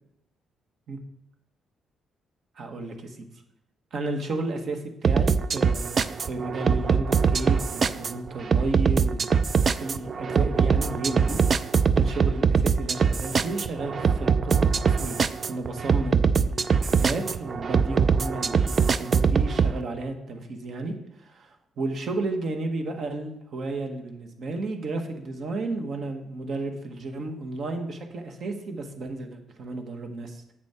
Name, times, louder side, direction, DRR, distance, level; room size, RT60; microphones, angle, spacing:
voice 1, 2.6-3.3 3.9-9.4 9.8-11.4 11.9-30.4, right 2 dB, 60° right, 4 dB, 1.5 m, -33 dB
sound 1, 5.0-19.7, right 6 dB, 45° right, 0.4 m, -23 dB
8.0 x 7.2 x 4.4 m, 0.84 s
cardioid pair, 90°, 0 cm